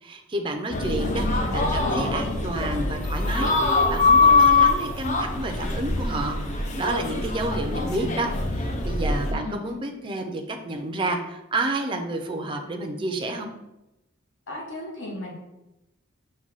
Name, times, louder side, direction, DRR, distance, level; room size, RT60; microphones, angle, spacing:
voice 1, 0.0-1.3 1.5-8.3 8.6-13.5, right 2 dB, 25° right, 4 dB, 0.4 m, -30 dB
voice 2, 0.7-2.8 7.7-8.3 9.3-9.6 14.5-15.3, left 1 dB, 60° left, -1 dB, 0.9 m, -36 dB
sound 1, 0.7-9.3, left 3 dB, 35° left, 0.5 m, -23 dB
6.0 x 2.2 x 3.9 m, 0.94 s
head